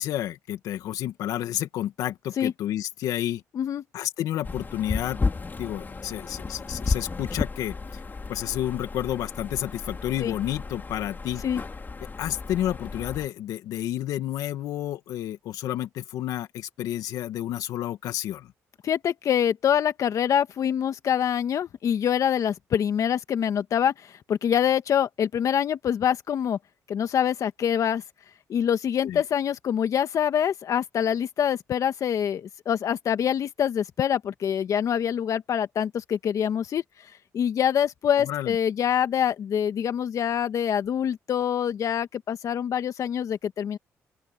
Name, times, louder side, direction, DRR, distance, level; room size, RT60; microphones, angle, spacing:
voice 1, 0.0-3.4 3.9-5.2 5.6-7.8 8.3-11.5 12.2-18.5 29.0-29.2 38.2-38.6, left 12 dB, 80° left, 2.2 m, -30 dB
sound 1, 4.4-13.3, left 4 dB, 30° left, 4.1 m, -33 dB
voice 2, 18.8-26.6 26.9-28.0 28.5-36.8 37.3-43.8, left 9 dB, 65° left, 1.9 m, -25 dB
open air
supercardioid pair, 70°, 6 cm